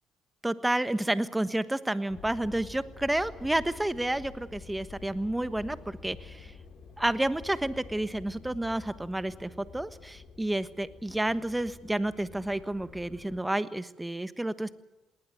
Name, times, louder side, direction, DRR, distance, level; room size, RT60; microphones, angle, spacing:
voice 1, 0.4-6.5 7.0-14.7, right 1 dB, 10° right, 13 dB, 1.3 m, -30 dB
sound 1, 2.1-13.4, left 5 dB, 65° left, 4.4 m, -49 dB
19.5 x 19.5 x 9.2 m, 1.1 s
cardioid pair, 85°, 0 cm